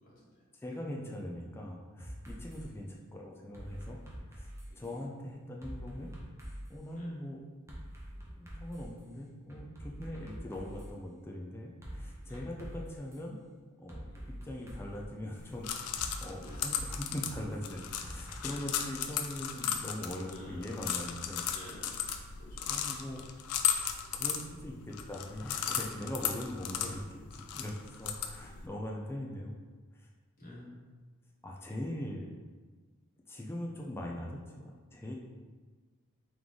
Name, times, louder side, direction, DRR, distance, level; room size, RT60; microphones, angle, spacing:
voice 1, 0.0-0.4 0.7-0.8 2.6-2.9 4.7-5.3 6.9-7.1 8.9-9.1 10.1-10.4 12.2-12.5 14.1-14.4 16.3-16.6 18.4-18.6 20.2-20.9 21.5-22.9 24.2-24.5 28.3-28.7 30.4-30.7, left 1 dB, 40° left, -6 dB, 1.3 m, -54 dB
voice 2, 0.6-4.0 4.3-6.1 6.7-7.4 8.3-13.4 13.8-14.0 14.4-21.5 22.7-23.2 24.1-24.7 25.1-29.6 29.9-30.1 30.4-30.8 31.4-32.4 33.3-35.1, left 1 dB, 10° left, -2 dB, 0.4 m, -41 dB
sound 1, 2.0-2.7 3.5-5.0 5.6-6.8 7.7-9.0 9.5-10.9 11.8-13.2 13.9-15.1 16.0-18.4, equal, 10° right, 0.7 m, -45 dB
sound 2, 15.4-28.7, left 8 dB, 80° left, 0.4 m, -36 dB
3.9 x 3.1 x 3.6 m, 1.4 s
head